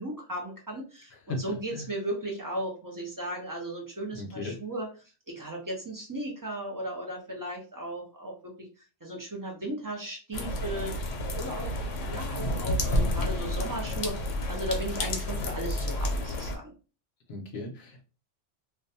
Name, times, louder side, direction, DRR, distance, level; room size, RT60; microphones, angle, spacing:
voice 1, 0.0-4.9 5.3-8.7 9.0-10.9 11.3-16.7, right 1 dB, 30° right, -1 dB, 0.4 m, -36 dB
voice 2, 1.3-1.9 4.1-4.6 17.3-18.0, left 2 dB, 60° left, 1 dB, 0.9 m, -37 dB
sound 1, 10.3-16.6, left 1 dB, 90° left, 1.0 m, -30 dB
2.5 x 2.2 x 2.7 m, 0.34 s
omnidirectional pair, 1.2 m